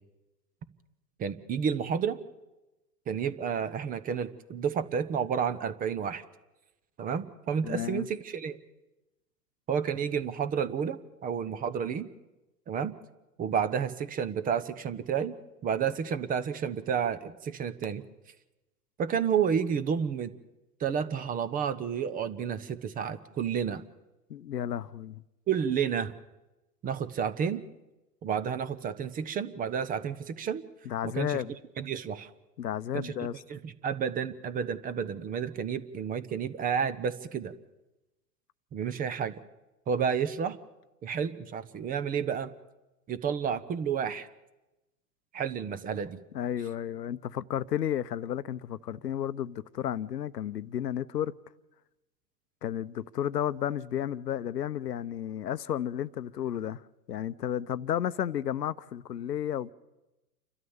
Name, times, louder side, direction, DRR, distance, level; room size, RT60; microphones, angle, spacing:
voice 1, 1.2-2.2 3.1-6.2 7.0-8.6 9.7-12.1 12.7-12.9 13.4-15.3 15.6-18.0 19.0-20.3 20.8-23.8 25.5-26.1 26.8-27.6 28.2-30.6 31.1-31.4 31.8-32.3 32.9-33.1 33.5-37.5 38.7-39.3 39.9-40.6 41.0-42.5 43.1-44.3 45.3-46.2, right 7 dB, 20° right, 0.7 m, -30 dB
voice 2, 7.6-8.1 24.3-25.2 30.9-31.5 32.6-33.4 46.3-51.3 52.6-59.7, left 10 dB, 80° left, 0.8 m, -32 dB
29.0 x 12.5 x 7.1 m
hypercardioid pair, 105°, 48 cm